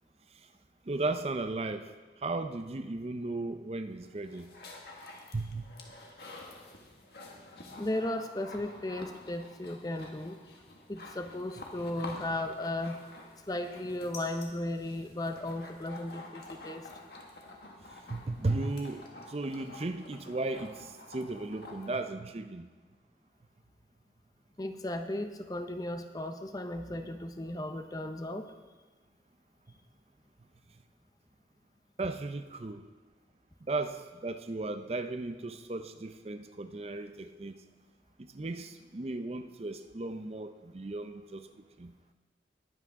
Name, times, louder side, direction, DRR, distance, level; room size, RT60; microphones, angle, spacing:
voice 1, 0.9-1.9 2.2-4.5 5.3-5.7 18.1-22.7 32.0-32.8 33.7-37.6 38.2-41.5 41.8-41.9, right 2 dB, 35° right, 8 dB, 0.5 m, -35 dB
sound 1, 4.0-22.1, left 2 dB, 65° left, 1.6 m, -49 dB
voice 2, 7.8-10.4 10.9-13.0 13.4-16.9 24.6-28.5, left 1 dB, 20° left, 7 dB, 0.6 m, -35 dB
21.0 x 8.2 x 3.6 m, 1.3 s
head